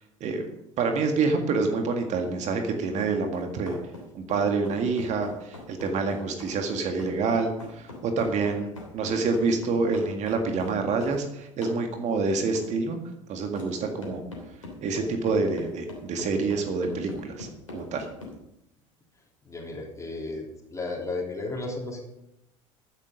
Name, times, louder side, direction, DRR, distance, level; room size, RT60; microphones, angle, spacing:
voice 1, 0.8-3.8 4.1-13.0 13.3-14.2 14.8-18.1, right 4 dB, 45° right, 5 dB, 1.9 m, -27 dB
sound 1, 3.0-11.2 11.6-11.8 12.5-12.7 13.5-13.7 14.0-18.3, left 2 dB, 85° left, 3.1 m, -42 dB
voice 2, 19.5-20.5 20.7-22.0, left 2 dB, 20° left, 0 dB, 3.4 m, -33 dB
13.5 x 9.8 x 5.2 m, 0.84 s
figure-of-eight pair, 65°, 16 cm